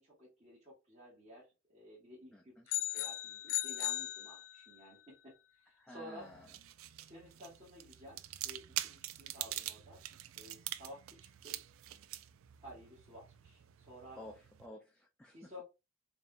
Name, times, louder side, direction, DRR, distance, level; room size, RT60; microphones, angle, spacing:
voice 1, 0.0-6.3 7.0-10.0 10.4-11.6 12.6-14.2 15.3-15.6, equal, 35° right, -9 dB, 2.0 m, -54 dB
voice 2, 2.3-2.6 5.8-6.5 14.2-15.6, left 1 dB, 5° left, 1 dB, 0.5 m, -52 dB
sound 1, 2.7-4.9, left 14 dB, 70° left, 0.3 m, -37 dB
sound 2, 6.2-14.7, right 13 dB, 85° right, 0.4 m, -45 dB
5.2 x 2.7 x 2.4 m, 0.25 s
head